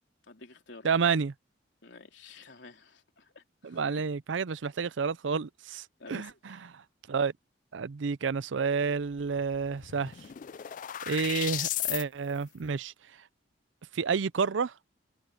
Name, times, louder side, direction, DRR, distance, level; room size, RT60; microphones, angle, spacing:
voice 1, 0.3-0.9 1.8-4.0 6.0-6.4, left 3 dB, 75° left, 3.3 m, -51 dB
voice 2, 0.8-1.3 3.6-6.8 7.1-7.3 7.7-10.1 11.0-12.9 13.9-14.7, right 5 dB, 85° right, 0.5 m, -30 dB
sound 1, 9.2-9.3 9.5-12.0, left 13 dB, 45° left, 0.3 m, -35 dB
head